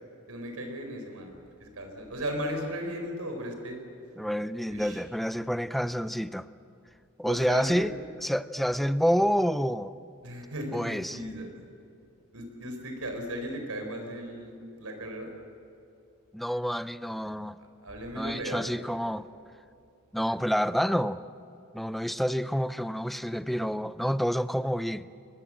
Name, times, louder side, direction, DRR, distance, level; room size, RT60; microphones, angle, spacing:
voice 1, 0.3-1.3 1.6-3.8 4.7-5.0 7.3-7.8 10.2-11.5 12.3-15.3 17.8-18.7, equal, 75° right, 4.5 m, -36 dB
voice 2, 4.2-6.5 7.2-7.9 8.2-9.9 10.7-11.2 16.3-17.6 18.2-19.3 20.1-21.2 21.7-25.1, equal, ahead, 0.5 m, -28 dB
22.5 x 20.5 x 7.6 m
head